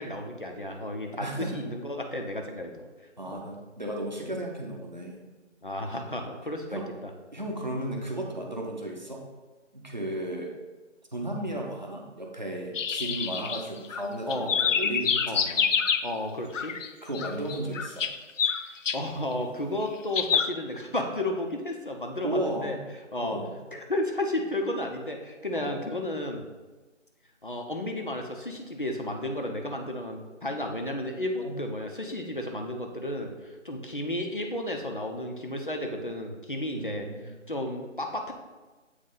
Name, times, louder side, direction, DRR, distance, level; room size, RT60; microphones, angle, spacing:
voice 1, 0.0-2.9 3.3-3.4 5.6-6.8 14.3-14.6 15.3-15.4 16.0-16.7 18.6-22.8 23.1-23.4 23.7-26.4 27.4-37.1 37.5-38.3, left 1 dB, 45° left, 3 dB, 0.6 m, -33 dB
voice 2, 1.2-1.7 3.2-5.2 6.7-6.9 7.3-9.2 9.7-10.6 11.1-15.7 17.0-18.1 22.2-22.8 23.2-23.6 25.6-25.8 31.4-31.6 36.7-37.3, right 1 dB, 40° right, 0 dB, 0.7 m, -34 dB
sound 1, 12.8-14.0 14.3-16.1 16.5-16.9 17.1-19.0 20.1-20.5, left 6 dB, 90° left, 0.5 m, -27 dB
7.8 x 3.2 x 3.8 m, 1.2 s
figure-of-eight pair, 175°, 37 cm